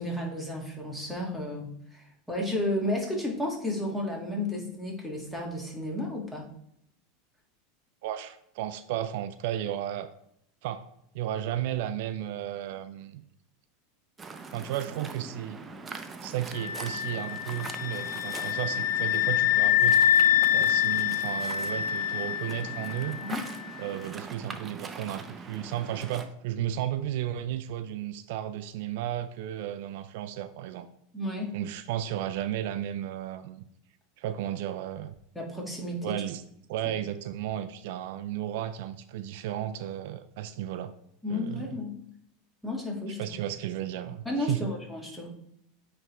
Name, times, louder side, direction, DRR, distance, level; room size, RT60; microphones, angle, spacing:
voice 1, 0.0-6.5 23.2-23.5 31.1-31.5 35.4-36.2 41.2-41.9 42.6-43.2 44.3-45.3, left 1 dB, 5° left, -1 dB, 1.7 m, -32 dB
voice 2, 8.0-10.1 10.6-10.9 11.1-13.2 14.5-15.6 16.2-20.0 20.5-23.2 23.8-30.9 31.5-33.7 34.2-35.1 36.0-36.4 36.7-40.9 41.3-41.7 43.2-44.7, right 11 dB, 70° right, 11 dB, 0.4 m, -34 dB
Waves surf, 14.2-26.3, right 4 dB, 20° right, 0.6 m, -42 dB
sound 1, 16.5-23.3, left 11 dB, 90° left, 0.5 m, -26 dB
8.8 x 3.4 x 3.1 m, 0.72 s
hypercardioid pair, 110°, 0 cm